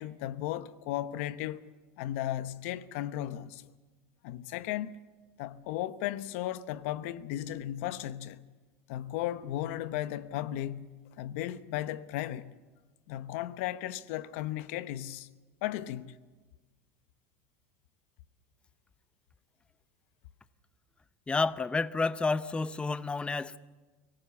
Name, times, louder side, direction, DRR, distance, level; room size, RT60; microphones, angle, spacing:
voice 1, 0.0-1.6 2.0-3.6 4.2-5.0 5.4-8.4 8.9-12.5 13.1-15.3 15.6-16.1, left 13 dB, 70° left, 1.0 m, -35 dB
voice 2, 21.3-23.6, left 4 dB, 15° left, 0.7 m, -30 dB
24.5 x 17.5 x 8.3 m
supercardioid pair, 105°, 7 cm